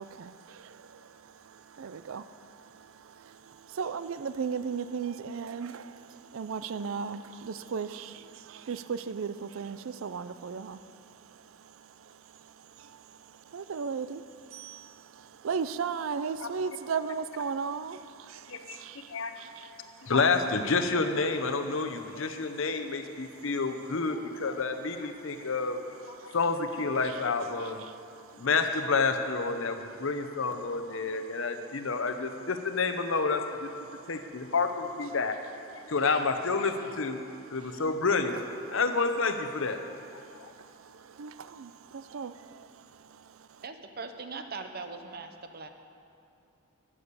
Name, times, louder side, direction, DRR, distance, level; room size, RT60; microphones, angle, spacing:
voice 1, 0.0-20.1 25.4-25.5 26.2-26.4 27.9-28.5 29.9-30.1 31.0-31.5 33.9-34.1 35.8-35.9 37.7-37.8 40.2-43.4, right 6 dB, 70° right, 13 dB, 0.4 m, -38 dB
voice 2, 18.5-19.4 20.0-25.8 26.1-27.8 28.3-33.7 34.1-35.4 35.9-39.8 40.1-40.5, left 4 dB, 65° left, 7 dB, 0.8 m, -29 dB
voice 3, 43.6-45.7, right 4 dB, 45° right, 7 dB, 0.7 m, -40 dB
10.0 x 9.7 x 6.8 m, 2.5 s
head